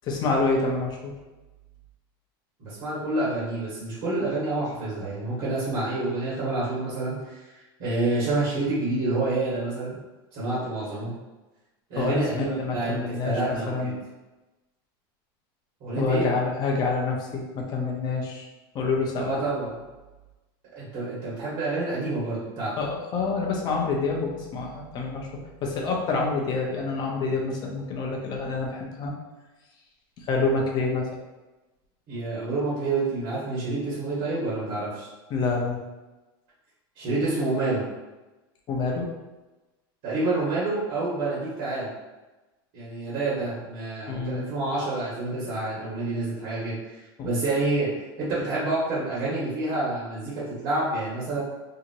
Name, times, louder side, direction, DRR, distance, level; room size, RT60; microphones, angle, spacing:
voice 1, 0.0-1.1 11.9-13.9 16.0-18.5 18.7-19.4 22.8-25.3 25.6-29.1 30.2-31.1 35.3-35.8 38.7-39.1 44.1-44.5 47.2-47.3, left 3 dB, 35° left, 0 dB, 0.6 m, -27 dB
voice 2, 2.6-7.2 7.5-10.0 10.3-11.1 11.9-12.9 13.2-13.9 15.8-16.3 19.2-19.7 20.7-22.7 32.1-35.1 37.0-37.8 40.0-41.9 42.7-47.0 47.2-47.9 48.2-51.4, right 2 dB, 50° right, -9 dB, 1.4 m, -28 dB
2.8 x 2.8 x 2.6 m, 1.1 s
supercardioid pair, 140°, 12 cm